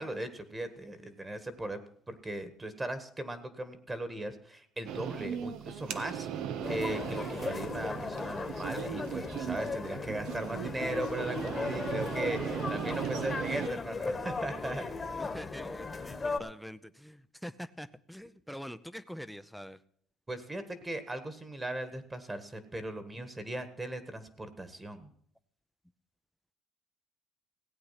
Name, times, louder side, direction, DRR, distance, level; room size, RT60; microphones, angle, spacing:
voice 1, 0.0-6.3 6.6-14.9 20.3-25.1, right 1 dB, 15° right, 12 dB, 1.6 m, -38 dB
sound 1, 4.9-13.7, right 8 dB, 75° right, 1.0 m, -38 dB
sound 2, 6.6-16.4, left 4 dB, 25° left, 1.4 m, -37 dB
voice 2, 15.2-16.8 17.0-17.1 17.4-19.8, equal, ahead, 12 dB, 0.7 m, -44 dB
16.5 x 8.6 x 5.8 m, 0.64 s
cardioid pair, 110°, 0 cm